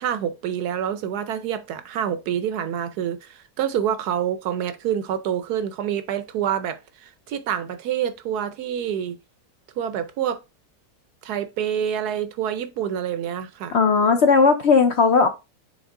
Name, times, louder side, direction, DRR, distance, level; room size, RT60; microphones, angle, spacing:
voice 1, 0.0-9.2 9.8-10.4 11.2-13.8, right 9 dB, 70° right, 1.1 m, -27 dB
voice 2, 13.7-15.3, left 5 dB, 60° left, 0.7 m, -16 dB
7.1 x 3.7 x 3.6 m
omnidirectional pair, 1.9 m